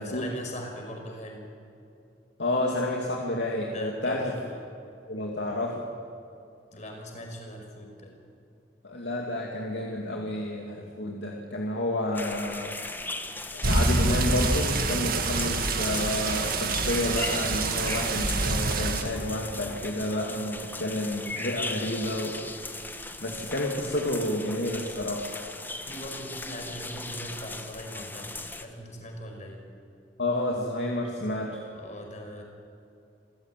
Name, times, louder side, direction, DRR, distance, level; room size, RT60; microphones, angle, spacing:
voice 1, 0.0-1.5 3.7-4.7 6.7-8.1 25.9-28.3 28.5-29.6 31.7-32.4, equal, 45° left, 2 dB, 5.3 m, -40 dB
voice 2, 2.4-4.3 5.1-5.9 8.8-12.7 13.5-22.4 23.2-25.3 30.2-31.6, left 1 dB, 80° left, -1 dB, 2.5 m, -30 dB
sound 1, 12.1-28.6, left 2 dB, 10° left, 1.4 m, -38 dB
sound 2, 13.6-19.0, right 3 dB, 55° right, 2.1 m, -26 dB
27.5 x 15.0 x 9.2 m, 2.6 s
head